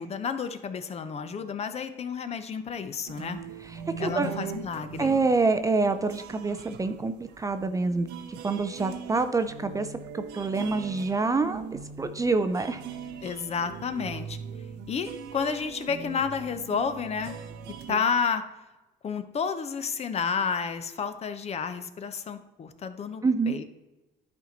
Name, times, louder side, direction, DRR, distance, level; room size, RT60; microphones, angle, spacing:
voice 1, 0.0-3.4 4.0-5.1 13.2-14.4 14.9-17.4 17.9-18.4 19.0-23.6, left 6 dB, 40° left, 10 dB, 0.7 m, -31 dB
sound 1, 3.1-18.0, right 7 dB, 85° right, 0.8 m, -41 dB
voice 2, 3.7-4.3 5.0-8.1 8.4-9.9 10.1-12.8 23.2-23.6, right 3 dB, 20° right, 9 dB, 0.4 m, -26 dB
11.0 x 4.5 x 4.0 m, 1.1 s
cardioid pair, 110°, 17 cm